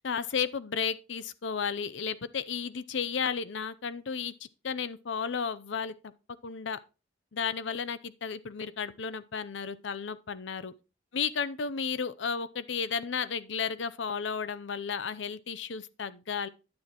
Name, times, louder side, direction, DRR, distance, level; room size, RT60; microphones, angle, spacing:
voice 1, 0.0-6.1 6.4-6.8 7.3-10.7 11.1-16.5, left 6 dB, 75° left, 0.6 m, -33 dB
9.6 x 8.4 x 3.0 m
head